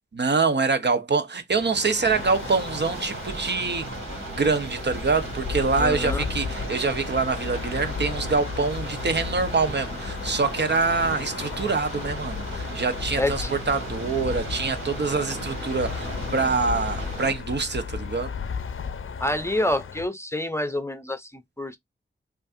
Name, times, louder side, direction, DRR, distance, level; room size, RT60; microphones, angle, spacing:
voice 1, 0.1-3.9 4.3-18.3, right 4 dB, 55° right, 0.8 m, -25 dB
sound 1, 1.5-20.1, left 6 dB, 80° left, 0.6 m, -35 dB
sound 2, 2.0-17.3, right 2 dB, 75° right, 2.0 m, -36 dB
voice 2, 5.8-6.2 13.2-13.5 19.2-21.8, left 1 dB, 15° left, 0.6 m, -27 dB
5.3 x 2.5 x 2.4 m
wide cardioid pair, 70°, 21 cm